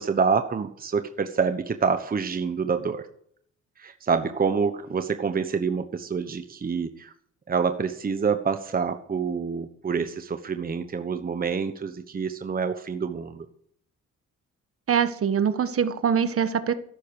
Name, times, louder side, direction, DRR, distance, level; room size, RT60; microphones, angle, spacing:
voice 1, 0.0-3.0 3.8-7.1 7.5-13.5, right 5 dB, 30° right, 9 dB, 1.1 m, -27 dB
voice 2, 14.9-16.7, right 7 dB, 50° right, 11 dB, 1.4 m, -23 dB
14.0 x 11.5 x 4.8 m, 0.63 s
cardioid pair, 90°, 30 cm